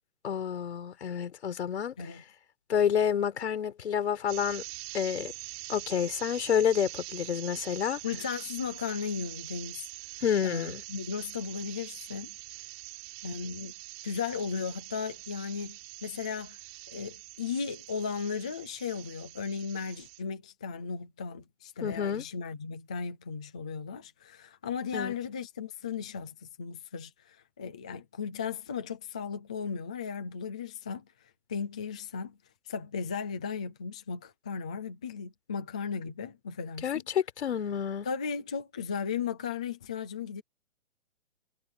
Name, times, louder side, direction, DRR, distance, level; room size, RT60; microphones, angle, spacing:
voice 1, 0.2-1.9 2.7-4.6 4.9-5.3 5.7-8.0 10.2-10.8 21.8-22.2 24.9-25.1 36.8-38.1, left 8 dB, 60° left, 4.2 m, -29 dB
sound 1, 4.3-20.2, right 27 dB, 30° right, 7.1 m, -44 dB
voice 2, 8.0-9.9 10.4-12.3 13.2-13.7 14.0-16.6 16.9-31.0 31.5-32.4 32.7-37.0 38.0-40.4, left 6 dB, 5° left, 0.4 m, -36 dB
hypercardioid pair, 150°, 37 cm